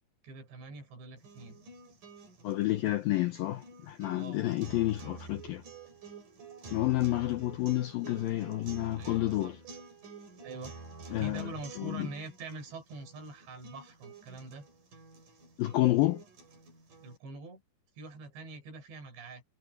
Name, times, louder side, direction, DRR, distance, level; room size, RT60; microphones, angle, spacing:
voice 1, 0.2-1.6 4.1-4.4 9.0-9.8 10.4-10.7 11.2-14.7 17.0-17.6 18.0-19.4, right 3 dB, 70° right, 8.3 m, -44 dB
sound 1, 1.2-17.2, right 4 dB, 45° right, 6.5 m, -50 dB
voice 2, 2.4-5.6 6.7-9.6 11.1-11.5 11.8-12.1 15.6-16.2, left 16 dB, 80° left, 2.1 m, -29 dB
omnidirectional pair, 5.2 m